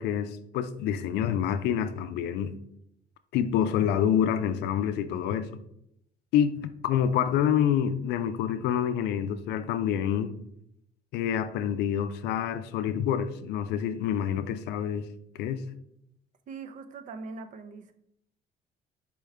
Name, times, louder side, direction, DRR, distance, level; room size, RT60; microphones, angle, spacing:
voice 1, 0.0-2.6 3.3-5.6 6.3-10.4 11.1-15.1 15.4-15.6, left 9 dB, 85° left, 0.4 m, -27 dB
voice 2, 16.5-17.9, right 4 dB, 50° right, 0.5 m, -41 dB
4.6 x 3.5 x 3.3 m
cardioid pair, 110°, 17 cm